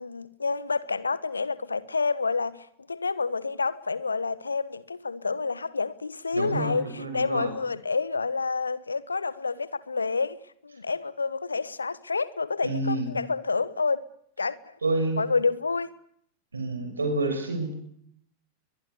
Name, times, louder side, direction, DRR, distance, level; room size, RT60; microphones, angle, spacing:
voice 1, 0.0-10.4 10.6-14.1 14.4-14.8 15.2-15.9, left 4 dB, 75° left, 1.3 m, -29 dB
voice 2, 6.3-7.5 12.6-13.1 14.8-15.2 16.5-17.7, right 2 dB, 75° right, 7.1 m, -28 dB
23.5 x 21.5 x 8.5 m
figure-of-eight pair, 90°, 0 cm